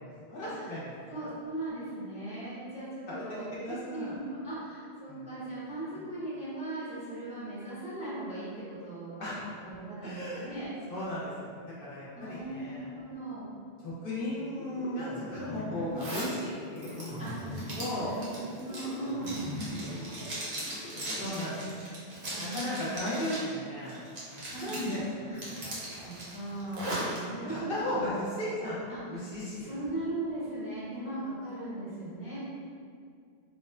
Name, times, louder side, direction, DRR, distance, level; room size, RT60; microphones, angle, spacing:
voice 1, 0.0-1.1 3.1-4.2 5.1-5.2 6.0-6.1 9.2-9.4 10.0-10.6 10.9-12.9 13.8-17.2 17.8-18.2 19.7-20.1 21.1-22.0 22.3-24.0 24.3-26.1 27.5-29.7, left 1 dB, 65° left, -8 dB, 0.8 m, -36 dB
voice 2, 1.1-9.4 9.6-10.7 12.2-13.5 15.8-16.0 17.2-19.5 21.4-21.7 22.3-23.0 24.5-24.8 25.2-28.2 28.9-29.2 29.6-32.4, right 2 dB, 10° right, -11 dB, 0.5 m, -39 dB
sound 1, 14.6-21.3, left 1 dB, 90° left, 0.8 m, -41 dB
Zipper (clothing), 16.0-16.3 16.8-23.5 23.9-24.9 25.3-27.2, right 1 dB, 60° right, 0.8 m, -39 dB
2.9 x 2.1 x 2.3 m, 2.2 s
omnidirectional pair, 1.1 m